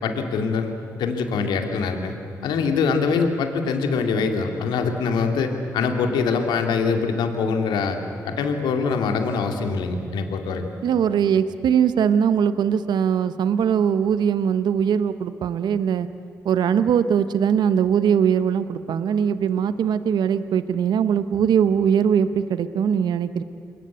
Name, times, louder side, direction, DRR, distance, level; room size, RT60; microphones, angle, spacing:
voice 1, 0.0-2.1 2.4-10.6, left 5 dB, 80° left, 5 dB, 2.4 m, -24 dB
voice 2, 10.8-16.1 16.4-23.4, right 8 dB, 75° right, 13 dB, 0.9 m, -21 dB
28.0 x 21.5 x 8.1 m, 2.7 s
hypercardioid pair, 40°, 8 cm